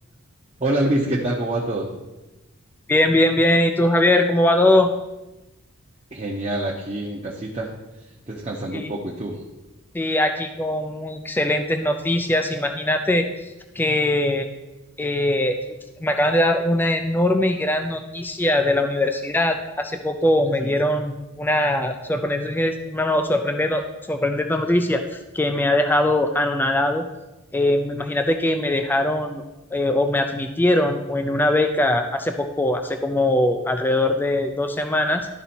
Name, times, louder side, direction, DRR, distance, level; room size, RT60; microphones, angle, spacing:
voice 1, 0.6-1.9 6.1-7.7 8.0-9.4 20.6-20.7, right 1 dB, 30° right, -3 dB, 0.8 m, -26 dB
voice 2, 2.9-4.9 8.7-8.9 9.9-14.5 15.0-27.1 27.5-29.4 29.7-35.3, left 1 dB, 10° left, 6 dB, 0.3 m, -21 dB
12.0 x 4.0 x 4.3 m, 1.0 s
head